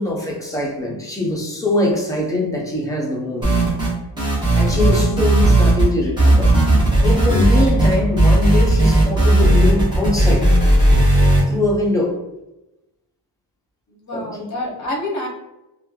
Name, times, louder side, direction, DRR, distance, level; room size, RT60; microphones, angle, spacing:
voice 1, 0.0-3.6 4.5-6.6 7.0-10.5 11.5-12.2 14.1-14.5, left 2 dB, 10° left, -2 dB, 0.5 m, -22 dB
sound 1, 3.4-3.9 4.2-5.9 6.2-11.4, right 1 dB, 10° right, 1.0 m, -15 dB
voice 2, 13.9-15.3, left 1 dB, 45° left, -1 dB, 0.8 m, -28 dB
3.0 x 2.3 x 2.3 m, 0.95 s
wide cardioid pair, 135°, 42 cm